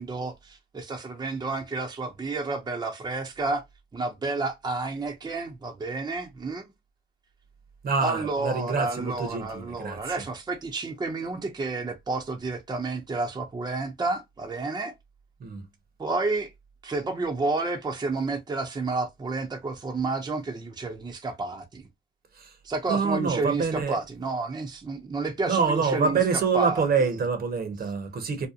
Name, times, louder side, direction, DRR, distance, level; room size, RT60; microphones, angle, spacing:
voice 1, 0.0-3.6 3.9-6.6 8.0-14.9 16.0-16.5 16.8-21.8 22.6-27.2, right 3 dB, 20° right, 0.6 m, -30 dB
voice 2, 7.8-10.1 15.4-15.6 22.4-22.5 22.9-24.0 25.5-28.5, right 5 dB, 50° right, 0.8 m, -26 dB
2.7 x 2.0 x 2.4 m
cardioid pair, 90°, 20 cm